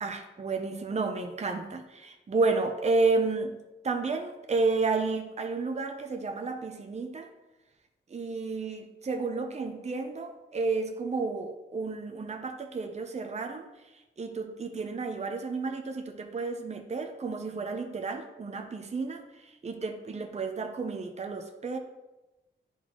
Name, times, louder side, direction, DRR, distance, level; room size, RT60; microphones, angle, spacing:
voice 1, 0.0-3.5 3.8-7.3 8.1-13.7 14.2-21.8, right 3 dB, 35° right, 4 dB, 0.7 m, -31 dB
11.0 x 4.1 x 3.1 m, 1.0 s
wide cardioid pair, 115°, 20 cm